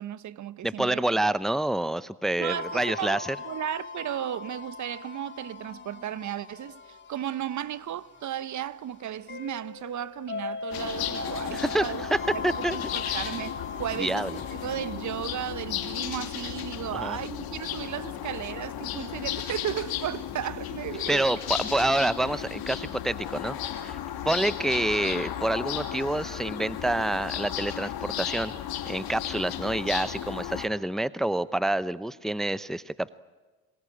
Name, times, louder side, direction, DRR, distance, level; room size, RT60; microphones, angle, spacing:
voice 1, 0.0-1.0 2.4-12.0 12.3-21.3, right 11 dB, 45° right, 0.9 m, -35 dB
voice 2, 0.6-3.3 11.5-11.8 12.1-12.2 12.4-12.8 13.0-13.2 14.0-14.3 16.9-17.2 21.1-23.6 23.8-24.0 24.3-28.5 28.9-33.1, right 1 dB, ahead, 0.8 m, -27 dB
sound 1, 2.5-15.0, left 4 dB, 25° left, 3.4 m, -40 dB
sound 2, 10.7-30.7, left 11 dB, 60° left, 2.8 m, -34 dB
26.5 x 21.0 x 8.7 m
hypercardioid pair, 60°, 41 cm